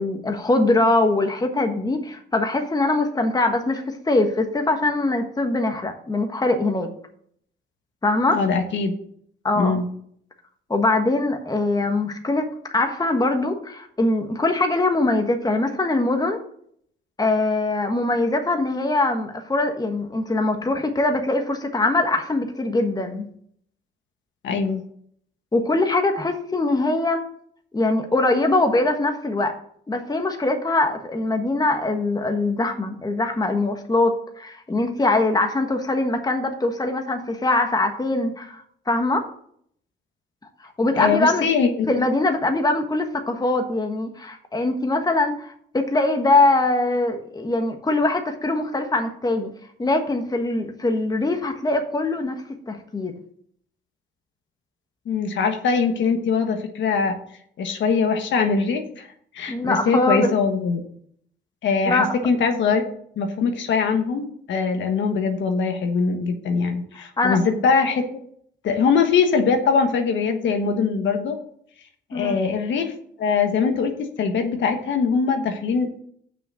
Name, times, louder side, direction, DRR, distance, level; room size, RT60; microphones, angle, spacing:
voice 1, 0.0-6.9 8.0-8.4 9.4-9.8 10.7-16.4 17.2-23.3 25.5-27.2 27.7-29.5 29.9-39.2 40.8-41.5 41.9-49.5 49.8-53.1 59.5-60.3 61.9-62.1 67.2-67.4 72.1-72.4, left 2 dB, 20° left, 5 dB, 1.4 m, -22 dB
voice 2, 8.3-8.9 9.5-9.8 24.4-24.8 40.9-41.9 55.0-57.2 57.6-59.1 59.3-60.8 61.6-62.9 63.2-68.0 68.6-71.4 72.1-72.9 73.2-73.9 74.2-76.0, left 5 dB, 70° left, 5 dB, 1.4 m, -22 dB
6.9 x 5.8 x 6.4 m, 0.63 s
cardioid pair, 90°, 20 cm